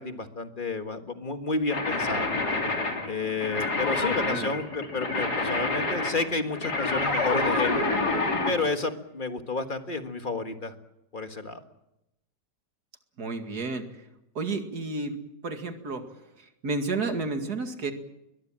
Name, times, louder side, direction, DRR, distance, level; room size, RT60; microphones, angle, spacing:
voice 1, 0.0-2.3 3.0-7.8 8.5-10.7 11.1-11.6, left 3 dB, 30° left, 7 dB, 1.6 m, -31 dB
sound 1, 1.7-8.6, left 3 dB, 65° left, 3.7 m, -28 dB
voice 2, 4.0-4.5 13.2-13.9 14.3-15.2 15.4-16.0 16.4-17.9, right 3 dB, 65° right, 6 dB, 2.7 m, -31 dB
22.0 x 21.5 x 7.5 m, 0.88 s
omnidirectional pair, 1.8 m